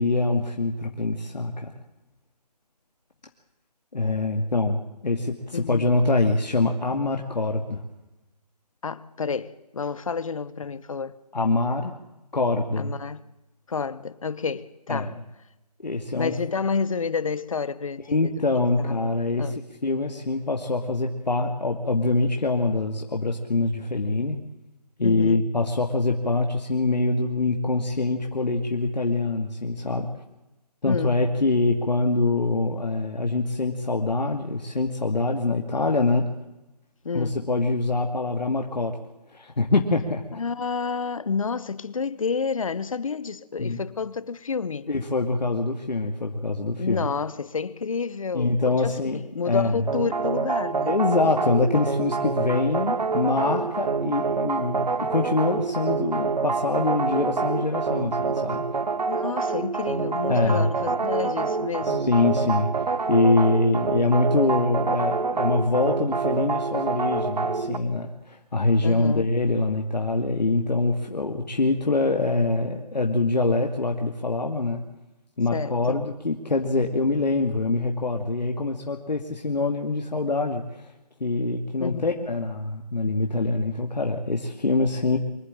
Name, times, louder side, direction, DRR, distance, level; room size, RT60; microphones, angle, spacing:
voice 1, 0.0-1.7 3.9-7.8 11.3-11.9 12.3-12.9 14.9-15.2 15.8-16.3 18.1-24.4 25.0-30.1 30.8-36.3 37.1-39.0 39.3-40.2 43.6-43.8 44.9-47.1 48.3-49.9 50.9-58.6 60.3-60.7 61.8-62.8 63.1-74.8 75.4-80.8 81.2-85.2, left 3 dB, 90° left, 2.4 m, -24 dB
voice 2, 5.5-5.9 8.8-11.1 12.8-13.2 13.7-15.1 16.1-18.3 18.8-19.1 19.4-19.6 25.0-25.4 30.8-31.2 37.0-37.4 40.4-44.9 46.8-50.9 59.1-62.0 68.8-69.3 75.5-76.0 81.8-82.3, left 5 dB, 55° left, 1.0 m, -30 dB
sound 1, 49.9-67.8, right 4 dB, 75° right, 1.3 m, -27 dB
24.5 x 12.0 x 9.0 m
figure-of-eight pair, 165°, 21 cm